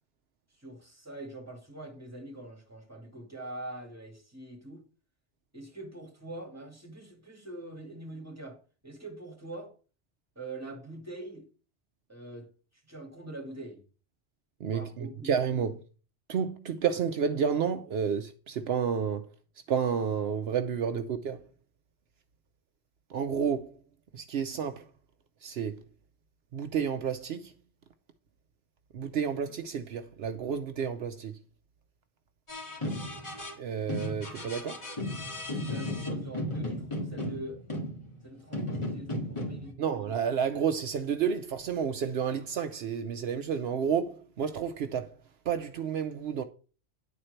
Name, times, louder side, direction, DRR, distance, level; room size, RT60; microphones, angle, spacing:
voice 1, 0.6-4.8 5.5-9.7 10.4-11.5 12.1-12.5 12.9-13.8 14.6-15.3 35.6-37.6 38.2-39.8, right 2 dB, 15° right, 2.1 m, -43 dB
voice 2, 14.6-15.7 16.3-19.3 19.7-21.4 23.1-23.7 24.1-24.8 25.4-25.8 26.5-27.5 28.9-31.4 33.6-34.8 39.8-45.1 45.5-46.4, right 7 dB, 75° right, 0.9 m, -30 dB
sound 1, 32.5-33.6 33.9-38.2 38.5-39.7, left 1 dB, 30° left, 2.1 m, -35 dB
10.0 x 4.4 x 6.5 m
omnidirectional pair, 1.1 m